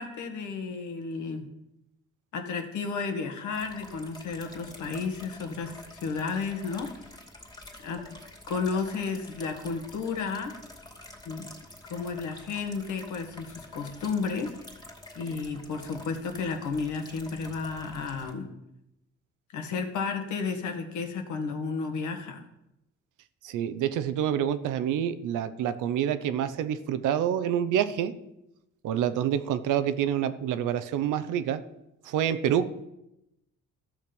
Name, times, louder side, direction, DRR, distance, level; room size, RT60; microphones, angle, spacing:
voice 1, 0.0-1.5 2.3-7.1 7.8-8.2 8.5-10.5 11.3-11.5 11.8-14.6 15.2-18.5 19.5-22.5, left 5 dB, 75° left, 5 dB, 1.7 m, -32 dB
sound 1, 3.5-18.3, left 1 dB, 15° left, 2.4 m, -48 dB
voice 2, 23.4-28.1 28.8-31.6 32.1-32.7, right 9 dB, 90° right, 12 dB, 0.8 m, -27 dB
13.5 x 6.6 x 5.3 m, 0.88 s
cardioid pair, 90°, 30 cm